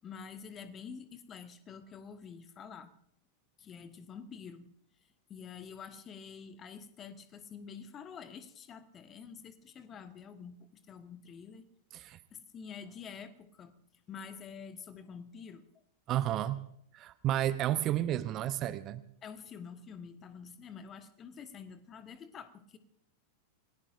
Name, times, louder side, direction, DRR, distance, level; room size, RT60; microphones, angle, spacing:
voice 1, 0.0-2.9 3.6-4.7 5.3-11.6 12.0-13.8 14.1-15.6 19.2-22.8, left 6 dB, 25° left, 10 dB, 1.3 m, -48 dB
voice 2, 16.1-16.6 16.9-19.0, right 12 dB, 35° right, 14 dB, 0.8 m, -31 dB
28.5 x 19.0 x 2.6 m, 0.70 s
figure-of-eight pair, 90°, 0 cm